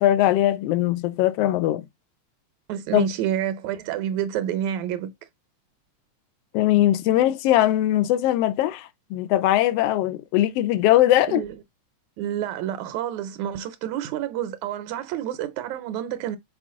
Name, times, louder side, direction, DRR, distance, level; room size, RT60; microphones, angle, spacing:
voice 1, 0.0-1.8 2.9-3.1 6.5-11.4, left 13 dB, 80° left, 1.4 m, -20 dB
voice 2, 2.7-5.1 11.3-11.5 12.2-16.4, right 10 dB, 80° right, 2.0 m, -28 dB
6.2 x 4.6 x 3.6 m
omnidirectional pair, 3.3 m